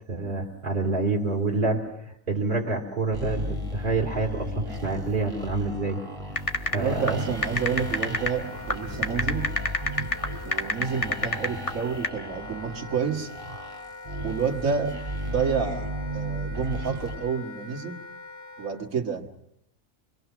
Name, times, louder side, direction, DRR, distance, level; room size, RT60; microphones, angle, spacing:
voice 1, 0.1-6.0 6.6-7.2, right 3 dB, 35° right, -3 dB, 2.8 m, -27 dB
sound 1, 3.1-17.2, right 1 dB, 20° right, 4.0 m, -35 dB
sound 2, 6.4-12.1, left 2 dB, 25° left, 1.3 m, -27 dB
voice 2, 6.7-9.6 10.4-13.3 14.2-15.0 15.3-18.0 18.6-19.3, right 6 dB, 75° right, 2 dB, 2.2 m, -29 dB
Wind instrument woodwind instrument, 6.9-18.7, left 2 dB, 45° left, 6.0 m, -43 dB
26.0 x 23.0 x 6.0 m, 0.76 s
omnidirectional pair, 1.4 m